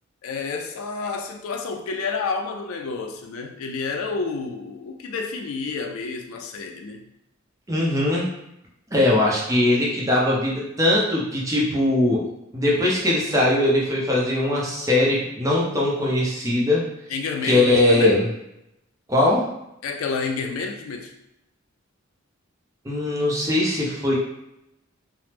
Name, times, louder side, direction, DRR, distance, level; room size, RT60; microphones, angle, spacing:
voice 1, 0.2-7.0 17.1-18.2 19.8-21.1, left 4 dB, 80° left, 4 dB, 0.4 m, -29 dB
voice 2, 7.7-8.3 8.9-12.2 12.5-16.8 17.4-18.3 19.1-19.5 22.8-24.1, left 1 dB, 15° right, -4 dB, 0.6 m, -20 dB
3.2 x 2.0 x 2.9 m, 0.85 s
head